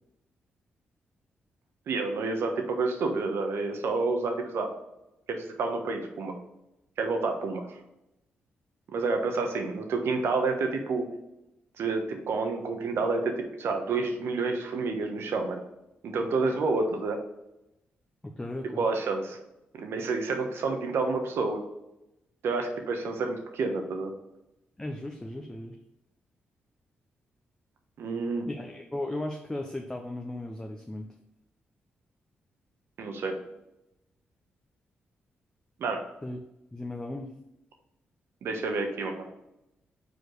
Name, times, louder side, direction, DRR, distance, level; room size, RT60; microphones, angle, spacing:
voice 1, 1.9-4.7 5.3-6.3 7.0-7.8 8.9-11.1 11.8-15.6 16.0-17.2 18.8-19.4 19.7-21.6 22.4-24.1 28.0-28.5 33.0-33.4 35.8-36.0 38.4-39.3, right 3 dB, 75° right, 4 dB, 1.1 m, -29 dB
voice 2, 18.2-18.9 24.8-25.8 28.5-31.1 36.2-36.4 36.7-37.3, left 1 dB, 15° left, 2 dB, 0.8 m, -36 dB
5.2 x 4.5 x 4.6 m, 0.89 s
supercardioid pair, 60°, 4 cm